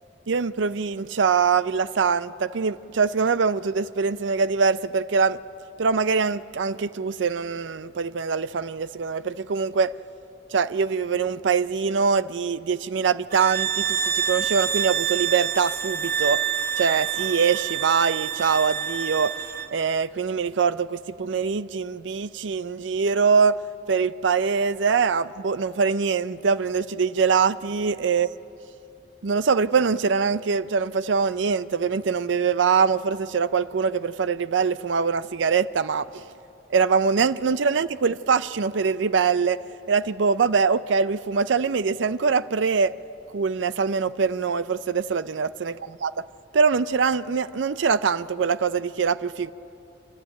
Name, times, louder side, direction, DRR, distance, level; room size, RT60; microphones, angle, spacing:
voice 1, 0.3-5.4 5.8-10.0 10.5-16.4 16.8-19.4 19.7-23.6 23.9-28.3 29.2-36.2 36.7-39.6 39.9-42.9 43.3-45.8 46.0-46.1 46.5-49.5, right 5 dB, 80° right, 0.5 m, -23 dB
sound 1, 13.3-19.7, right 8 dB, 55° right, 1.2 m, -27 dB
28.5 x 12.5 x 8.9 m
head